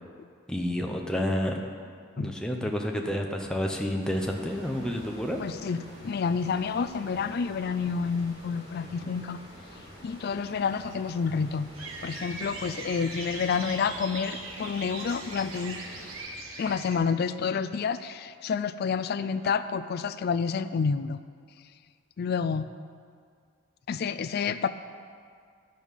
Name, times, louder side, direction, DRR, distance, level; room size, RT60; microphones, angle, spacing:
voice 1, 0.5-1.6 2.2-5.4, equal, 5° left, 1 dB, 0.7 m, -29 dB
sound 1, 4.0-16.2, equal, 25° right, 2.9 m, -48 dB
voice 2, 5.4-9.4 10.0-11.7 12.0-15.8 16.6-21.2 22.2-22.7 23.9-24.7, left 6 dB, 50° left, 12 dB, 0.3 m, -29 dB
sound 2, 11.7-17.0, right 3 dB, 80° right, 1.3 m, -40 dB
11.0 x 5.3 x 6.4 m, 2.1 s
head